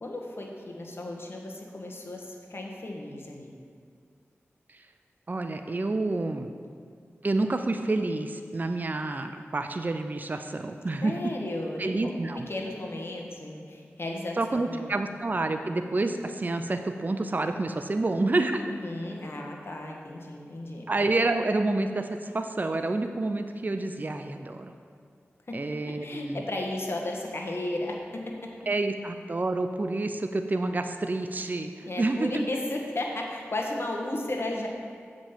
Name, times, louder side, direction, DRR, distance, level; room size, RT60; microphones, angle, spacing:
voice 1, 0.0-3.5 11.0-12.0 12.5-14.9 18.7-20.9 25.5-25.6 26.0-28.2 31.8-34.7, left 1 dB, 55° left, 0 dB, 1.3 m, -34 dB
voice 2, 5.3-6.5 7.2-11.2 11.8-12.5 14.4-18.6 20.9-24.7 25.5-26.4 28.7-32.4, right 2 dB, 40° right, 7 dB, 0.5 m, -28 dB
7.4 x 5.2 x 7.2 m, 2.1 s
cardioid pair, 50°, 5 cm